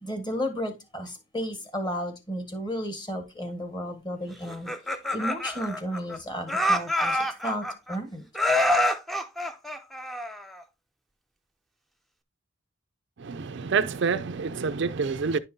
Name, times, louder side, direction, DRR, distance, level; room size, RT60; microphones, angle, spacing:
voice 1, 0.0-8.2, equal, 20° left, 1.5 m, -33 dB
Laughter, 4.5-6.2 6.5-8.0 8.3-10.6, left 1 dB, ahead, 0.5 m, -26 dB
voice 2, 13.2-15.4, right 5 dB, 55° right, 0.4 m, -27 dB
10.5 x 5.3 x 2.7 m
head